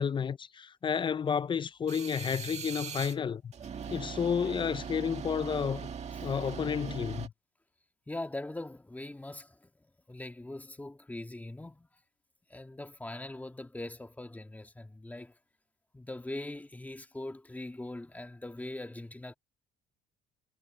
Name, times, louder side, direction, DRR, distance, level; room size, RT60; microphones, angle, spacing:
voice 1, 0.0-3.5 3.9-5.9 6.2-7.3, left 7 dB, 30° left, 0.5 m, -31 dB
sound 1, 1.9-3.2 3.5-7.3, right 7 dB, 40° right, 2.0 m, -40 dB
voice 2, 8.1-12.0 12.5-15.4 15.9-19.3, left 2 dB, 10° left, 1.9 m, -42 dB
cardioid pair, 110°, 17 cm